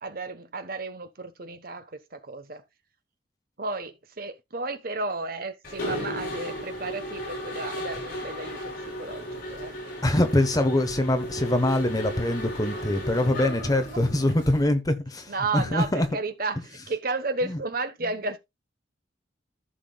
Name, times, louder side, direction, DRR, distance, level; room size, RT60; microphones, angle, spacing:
voice 1, 0.0-2.6 3.6-8.7 9.0-9.7 15.3-18.4, right 3 dB, 50° right, 1.2 m, -33 dB
Mechanisms, 5.6-14.6, equal, 50° left, 6.0 m, -35 dB
voice 2, 10.0-16.1 17.4-17.6, left 1 dB, 20° left, 1.1 m, -24 dB
14.0 x 6.0 x 2.3 m
head